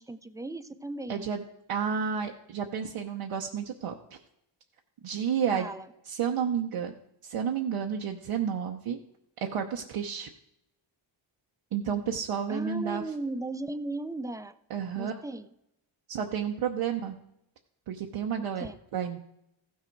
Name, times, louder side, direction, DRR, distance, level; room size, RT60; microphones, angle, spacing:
voice 1, 0.0-1.3 5.5-5.9 12.5-14.6 14.9-15.5 18.6-18.7, right 2 dB, 5° right, 12 dB, 0.5 m, -36 dB
voice 2, 1.1-1.4 1.7-4.2 5.0-5.7 6.1-6.9 7.2-9.0 9.4-10.3 11.7-13.0 14.7-15.2 16.1-17.2 17.9-19.2, right 7 dB, 85° right, 1 dB, 0.9 m, -31 dB
14.5 x 6.5 x 4.6 m, 0.80 s
cardioid pair, 75°, 50 cm